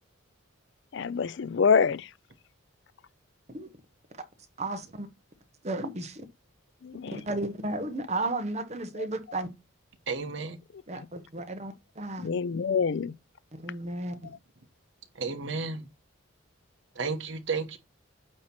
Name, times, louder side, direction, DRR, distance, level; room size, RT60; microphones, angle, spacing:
voice 1, 0.9-2.1 6.8-7.2 9.0-9.1 10.7-11.1 12.2-13.1, left 6 dB, 55° left, 0.4 m, -27 dB
voice 2, 4.6-5.1 5.6-6.2 7.1-9.5 10.9-12.3 13.5-14.3, right 2 dB, 30° right, 1.0 m, -34 dB
voice 3, 10.1-10.6 15.2-15.9 16.9-17.8, right 4 dB, 60° right, 1.1 m, -32 dB
8.9 x 3.0 x 5.9 m
head